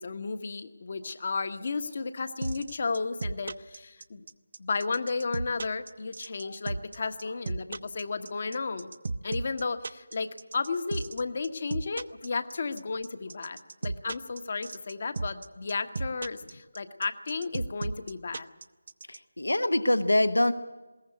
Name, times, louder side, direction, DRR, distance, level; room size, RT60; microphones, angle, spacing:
voice 1, 0.0-4.2 4.6-8.9 9.2-18.5, left 4 dB, 40° left, 10 dB, 1.3 m, -33 dB
sound 1, 2.4-19.2, right 3 dB, 45° right, 0.6 m, -34 dB
voice 2, 19.1-20.5, left 1 dB, 65° left, 11 dB, 1.2 m, -24 dB
21.0 x 18.0 x 8.1 m, 1.2 s
figure-of-eight pair, 160°, 0 cm